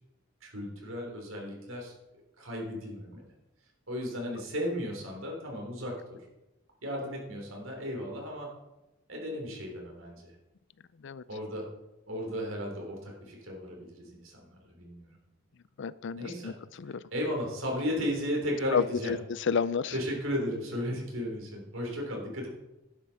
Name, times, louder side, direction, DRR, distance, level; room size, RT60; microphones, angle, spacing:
voice 1, 0.4-1.9 2.4-3.2 3.9-6.2 6.8-8.5 9.1-10.3 11.3-11.7 12.1-15.1 16.2-16.5 16.9-19.1 19.9-22.5, equal, 80° right, 0 dB, 3.4 m, -35 dB
voice 2, 15.8-16.5 16.8-17.0 18.7-19.2 19.5-19.9, left 6 dB, 65° left, 18 dB, 0.5 m, -30 dB
11.0 x 7.6 x 5.7 m, 0.98 s
head